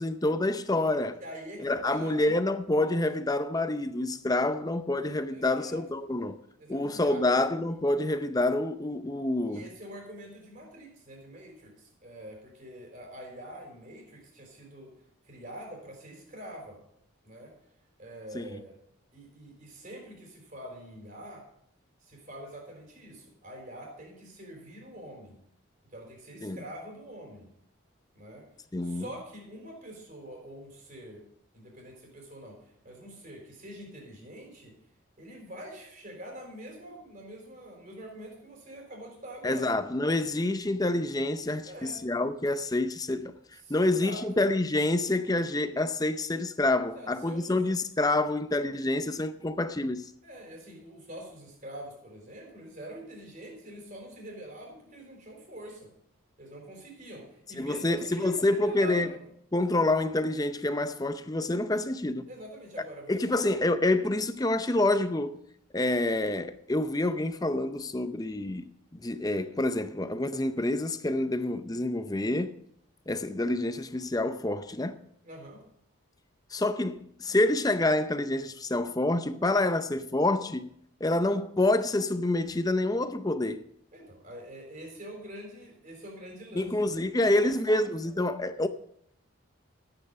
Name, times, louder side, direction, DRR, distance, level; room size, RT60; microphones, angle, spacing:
voice 1, 0.0-1.2 1.6-6.4 6.7-9.7 18.3-18.6 26.4-26.6 28.7-29.0 39.4-43.3 43.7-50.1 57.6-59.1 59.5-62.3 63.1-65.4 65.7-72.6 73.1-75.0 76.5-80.7 81.0-83.6 86.5-88.7, left 2 dB, 20° left, 0.6 m, -27 dB
voice 2, 1.2-2.2 5.3-5.8 6.6-7.2 9.5-14.9 15.2-16.8 17.2-17.5 18.0-18.8 19.1-21.4 22.0-25.4 25.9-27.5 28.1-28.5 28.8-31.2 31.5-34.7 35.2-39.7 41.6-42.0 43.5-44.2 46.8-47.5 50.2-55.9 56.4-59.3 62.3-63.6 75.2-75.6 83.9-88.1, right 1 dB, 40° right, 4.0 m, -45 dB
14.0 x 9.0 x 5.4 m
head